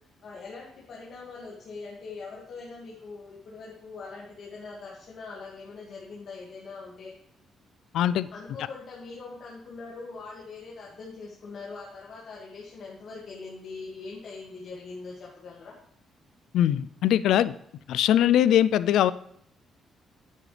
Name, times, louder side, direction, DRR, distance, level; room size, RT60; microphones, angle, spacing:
voice 1, 0.2-7.1 8.3-15.8, left 4 dB, 60° left, -4 dB, 2.0 m, -42 dB
voice 2, 7.9-8.3 16.5-17.5 17.9-19.1, left 11 dB, 80° left, 17 dB, 0.3 m, -21 dB
9.8 x 8.5 x 3.3 m, 0.73 s
cardioid pair, 90°, 0 cm